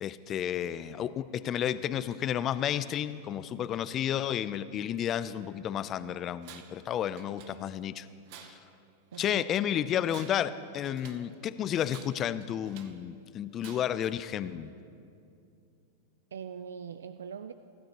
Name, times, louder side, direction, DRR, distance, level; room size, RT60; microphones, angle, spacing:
voice 1, 0.0-8.1 8.4-8.6 9.2-14.7, left 10 dB, 35° left, 15 dB, 0.5 m, -32 dB
Tools, 6.4-6.9 7.2-7.9 8.3-9.4 10.0-11.3 11.9-13.0 13.6-14.1, right 9 dB, 55° right, 1.0 m, -52 dB
voice 2, 9.1-9.5 16.3-17.5, right 7 dB, 85° right, 11 dB, 0.4 m, -42 dB
24.0 x 12.5 x 3.0 m, 2.5 s
hypercardioid pair, 105°, 0 cm